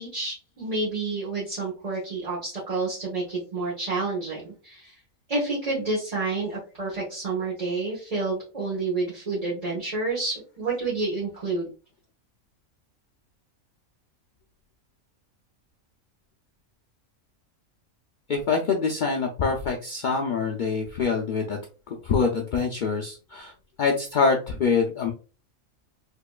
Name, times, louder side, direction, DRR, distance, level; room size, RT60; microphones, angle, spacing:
voice 1, 0.0-4.9 5.3-11.7, right 3 dB, 30° right, -6 dB, 1.1 m, -29 dB
voice 2, 18.3-21.6 22.1-23.5 23.8-25.1, left 5 dB, 80° left, 1 dB, 0.4 m, -25 dB
3.7 x 2.9 x 2.3 m, 0.35 s
omnidirectional pair, 1.4 m